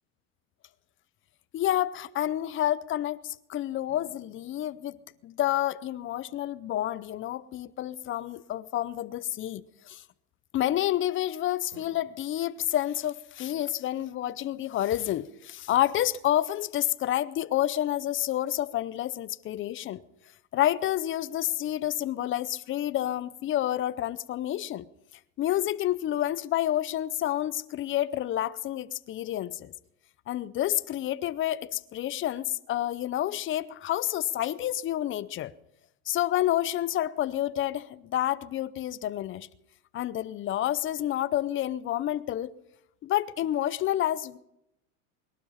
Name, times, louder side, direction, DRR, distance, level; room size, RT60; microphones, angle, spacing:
voice 1, 1.5-5.0 5.2-10.0 10.5-20.0 20.5-24.8 25.4-29.7 30.3-35.5 36.1-39.5 39.9-42.5 43.0-44.4, left 12 dB, 30° left, 0.6 m, -29 dB
sound 1, 3.9-6.8 11.7-12.0, right 2 dB, 60° right, 6.3 m, -60 dB
21.5 x 12.0 x 5.7 m
supercardioid pair, 125°, 43 cm